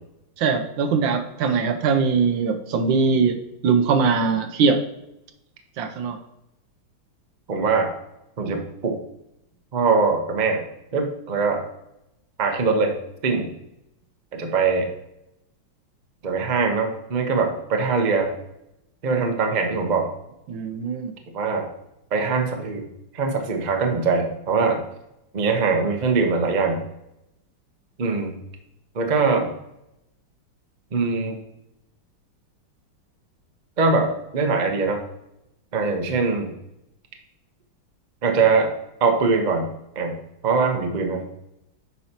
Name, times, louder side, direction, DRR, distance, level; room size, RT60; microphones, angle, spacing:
voice 1, 0.4-4.8 5.8-6.2 20.5-21.1, right 5 dB, 70° right, 7 dB, 1.3 m, -21 dB
voice 2, 7.5-7.9 8.4-9.0 9.7-10.6 10.9-11.6 12.4-12.9 13.2-13.5 14.3-14.9 16.2-18.3 19.0-20.1 21.3-21.6 22.1-22.8 23.1-24.8 25.3-26.8 28.0-28.3 28.9-29.5 30.9-31.4 33.8-35.0 35.7-36.5 38.2-38.7 39.0-39.7 40.0-40.1 40.4-41.2, right 4 dB, 50° right, 3 dB, 0.5 m, -22 dB
8.9 x 5.4 x 2.9 m, 0.85 s
omnidirectional pair, 2.3 m